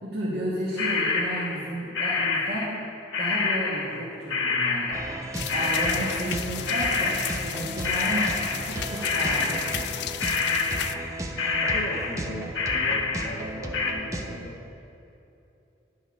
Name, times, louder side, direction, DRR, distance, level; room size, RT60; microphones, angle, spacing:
voice 1, 0.0-2.7 3.2-5.0 5.5-7.2 7.4-8.3 8.6-9.9, right 1 dB, 55° right, -7 dB, 1.5 m, -32 dB
sound 1, 0.8-7.6 7.8-9.9 10.2-11.1 11.4-13.9, left 4 dB, 85° left, 1.1 m, -27 dB
sound 2, 4.9-14.4, right 1 dB, 15° right, 0.5 m, -35 dB
sound 3, 5.3-11.0, left 11 dB, 65° left, 0.3 m, -35 dB
voice 2, 11.6-14.6, left 1 dB, 40° left, -3 dB, 0.7 m, -38 dB
10.0 x 6.5 x 4.7 m, 2.9 s
head